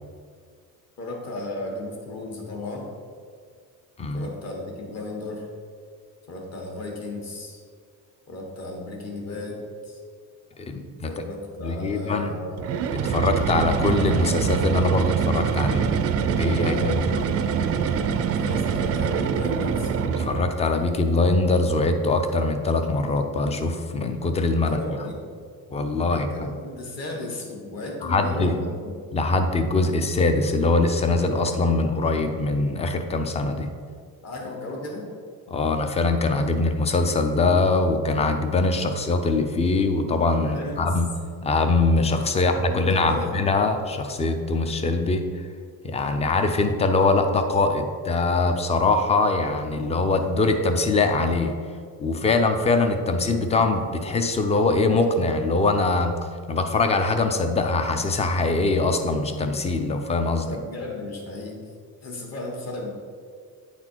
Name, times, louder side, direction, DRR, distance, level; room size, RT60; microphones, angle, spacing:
voice 1, 1.0-2.9 4.1-5.5 6.3-7.6 8.3-10.0 11.1-12.6 16.6-17.1 18.2-19.9 24.6-25.4 26.1-28.9 34.2-35.1 40.4-40.9 42.4-43.4 60.5-61.6 62.0-62.9, left 2 dB, 45° left, 0 dB, 1.5 m, -35 dB
voice 2, 4.0-4.3 10.6-11.1 11.6-12.4 12.9-16.0 16.3-17.2 20.2-24.9 25.7-26.5 28.0-28.5 29.1-33.7 35.5-41.1 41.4-45.5 45.8-51.5 52.0-56.2 56.5-60.5, left 3 dB, 20° left, 7 dB, 0.4 m, -22 dB
sound 1, 12.6-20.6, right 7 dB, 40° right, 0.4 m, -24 dB
9.4 x 4.2 x 4.5 m, 2.1 s
cardioid pair, 170°, 37 cm